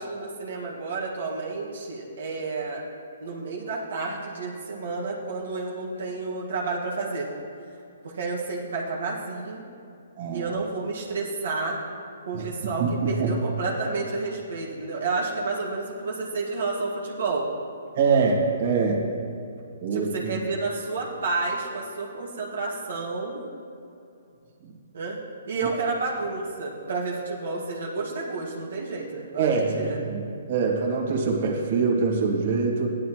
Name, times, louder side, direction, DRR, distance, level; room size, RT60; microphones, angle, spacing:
voice 1, 0.0-2.8 3.2-7.3 8.0-9.6 10.3-11.8 12.2-17.5 19.9-23.4 24.9-25.2 25.4-30.0, right 3 dB, 70° right, -3 dB, 1.8 m, -30 dB
voice 2, 10.2-10.5 12.3-12.5 12.8-13.3 18.0-19.1 19.8-20.4 29.3-30.2 30.5-32.9, right 4 dB, 50° right, -2 dB, 2.0 m, -24 dB
15.5 x 11.0 x 3.1 m, 2.6 s
hypercardioid pair, 150°, 0 cm